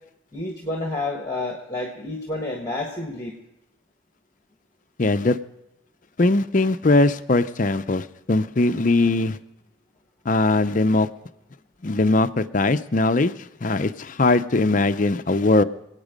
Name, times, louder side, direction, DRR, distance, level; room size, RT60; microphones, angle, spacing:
voice 1, 0.3-3.4, left 2 dB, 15° left, 1 dB, 1.4 m, -29 dB
voice 2, 5.0-5.4 6.2-9.4 10.3-11.1 11.8-13.3 13.6-15.6, left 2 dB, 40° left, 11 dB, 0.5 m, -20 dB
26.5 x 9.0 x 5.2 m, 0.88 s
head